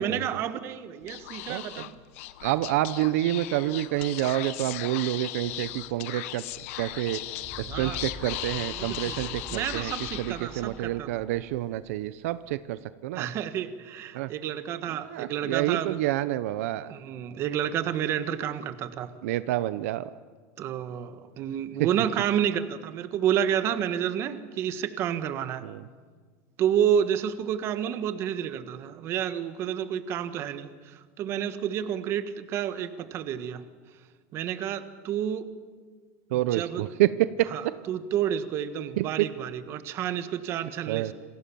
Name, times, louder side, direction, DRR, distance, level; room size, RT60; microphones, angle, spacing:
voice 1, 0.0-2.0 7.7-8.0 8.7-11.1 13.1-16.0 16.8-19.1 20.6-25.7 26.6-33.6 34.3-35.5 36.3-36.8 37.5-41.1, right 9 dB, 30° right, 11 dB, 1.5 m, -30 dB
Speech / Whispering, 1.0-10.8, left 16 dB, 60° left, 1.2 m, -38 dB
voice 2, 1.5-1.8 2.4-6.4 6.8-7.2 7.6-9.9 10.2-13.3 14.1-14.3 15.0-16.9 19.2-20.1 25.6-25.8 36.3-37.5 39.0-39.3 40.9-41.1, right 15 dB, 70° right, 14 dB, 0.9 m, -28 dB
sound 1, 7.0-12.5, left 1 dB, 10° left, 6.5 m, -45 dB
28.0 x 26.5 x 7.1 m, 1.5 s
supercardioid pair, 175°, 8 cm